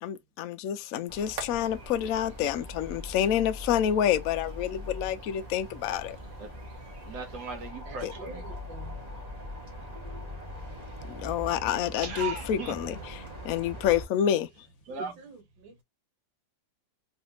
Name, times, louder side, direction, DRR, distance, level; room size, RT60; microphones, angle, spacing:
voice 1, 0.0-6.2 8.0-8.1 11.0-13.2 13.4-14.7, left 10 dB, 70° left, 0.8 m, -28 dB
sound 1, 1.1-14.1, left 1 dB, 25° right, 1.3 m, -42 dB
sound 2, 1.3-7.7, right 3 dB, 45° right, 1.3 m, -49 dB
voice 2, 7.1-8.4 9.9-10.3 12.0-12.7 14.9-15.2, right 5 dB, 60° right, 1.8 m, -37 dB
voice 3, 7.9-9.0 14.9-15.8, right 4 dB, 85° right, 2.0 m, -47 dB
3.5 x 3.3 x 2.9 m
omnidirectional pair, 2.0 m